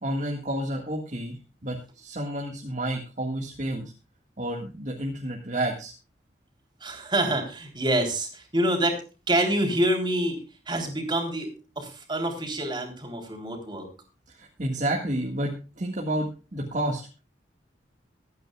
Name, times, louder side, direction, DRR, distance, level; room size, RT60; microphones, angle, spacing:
voice 1, 0.0-3.9 4.4-5.9 14.3-17.0, right 1 dB, 40° right, 0 dB, 1.8 m, -30 dB
voice 2, 6.8-9.0 9.3-10.4 10.7-11.5 11.8-13.9, right 1 dB, 25° right, 3 dB, 3.5 m, -26 dB
23.5 x 9.4 x 2.4 m, 0.32 s
head